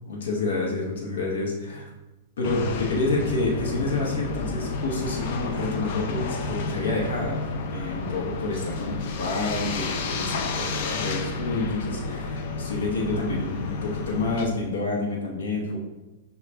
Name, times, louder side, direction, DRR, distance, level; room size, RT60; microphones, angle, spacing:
voice 1, 0.0-1.9 2.4-15.8, left 3 dB, 85° left, -2 dB, 0.9 m, -28 dB
sound 1, 2.4-14.5, left 3 dB, 55° left, 0.5 m, -31 dB
6.2 x 2.3 x 3.2 m, 1.1 s
hypercardioid pair, 135°, 0 cm